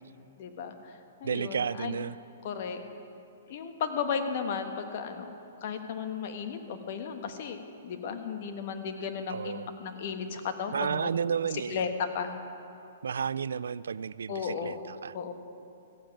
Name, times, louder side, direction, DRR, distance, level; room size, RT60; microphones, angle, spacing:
voice 1, 0.4-0.9 1.2-2.0 2.4-2.8 3.5-5.3 5.6-11.1 11.7-11.9 12.1-12.4 14.3-14.8 15.1-15.3, left 6 dB, 50° left, 7 dB, 1.2 m, -35 dB
voice 2, 1.2-2.2 9.3-9.7 10.7-11.8 13.0-15.1, right 7 dB, 90° right, 19 dB, 0.3 m, -32 dB
15.0 x 7.2 x 9.0 m, 2.7 s
hypercardioid pair, 150°, 0 cm